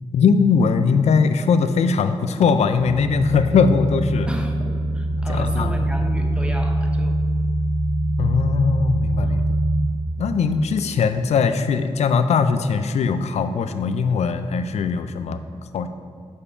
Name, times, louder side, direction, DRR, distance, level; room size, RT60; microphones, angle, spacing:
voice 1, 0.1-4.3 5.3-5.7 8.2-9.4 10.2-15.4 15.7-15.9, left 5 dB, 85° left, 10 dB, 0.4 m, -20 dB
sound 1, 2.8-9.8, right 1 dB, 65° right, 1.5 m, -23 dB
voice 2, 4.3-7.2 9.2-9.6, right 1 dB, 10° right, 3 dB, 0.9 m, -34 dB
6.4 x 5.6 x 5.4 m, 2.2 s
wide cardioid pair, 100°, 11 cm